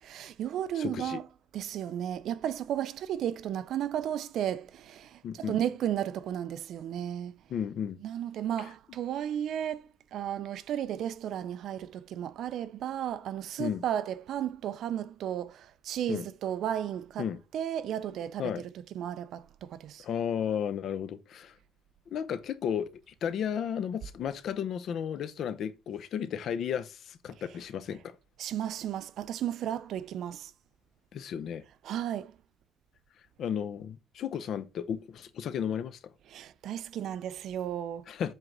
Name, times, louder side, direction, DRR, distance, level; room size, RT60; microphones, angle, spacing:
voice 1, 0.0-1.2 1.5-7.4 8.0-17.3 17.5-18.6 18.9-20.0 28.4-30.5 31.8-32.3 36.3-38.1, right 10 dB, 60° right, 0.5 m, -34 dB
voice 2, 0.8-1.2 5.2-5.6 7.5-8.0 8.6-8.7 13.6-13.8 16.1-16.2 17.2-17.4 18.4-18.6 20.0-21.6 22.1-28.2 31.1-31.6 33.4-36.0 38.1-38.3, left 8 dB, 50° left, 0.7 m, -33 dB
7.9 x 3.8 x 6.0 m
cardioid pair, 170°, 0 cm